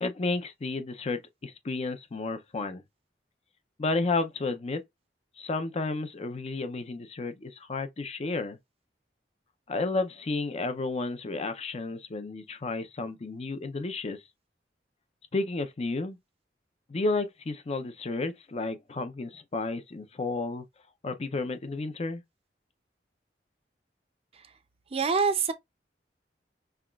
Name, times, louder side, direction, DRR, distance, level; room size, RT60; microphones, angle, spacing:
voice 1, 0.0-2.8 3.8-4.8 5.4-8.6 9.7-14.2 15.3-16.2 16.9-20.7 21.0-22.2, left 3 dB, 35° left, 0.5 m, -32 dB
voice 2, 24.9-25.5, right 5 dB, 35° right, 0.4 m, -25 dB
5.6 x 2.3 x 2.3 m
head